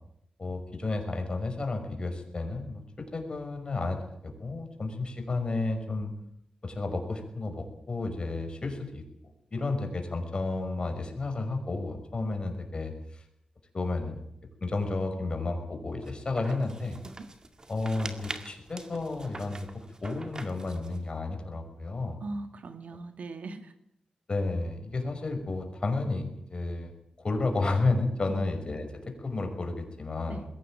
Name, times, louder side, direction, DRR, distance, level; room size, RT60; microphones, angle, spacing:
voice 1, 0.4-6.1 6.6-9.0 9.5-13.2 13.7-14.2 14.6-17.0 17.7-22.2 24.3-26.9 27.2-30.4, left 3 dB, 40° left, 5 dB, 5.8 m, -32 dB
sound 1, 16.0-21.1, right 2 dB, 30° right, 2.1 m, -44 dB
voice 2, 22.2-23.7 28.3-28.4 30.3-30.5, right 2 dB, 70° right, 8 dB, 2.3 m, -39 dB
21.5 x 17.0 x 9.1 m, 0.76 s
wide cardioid pair, 110°, 2 cm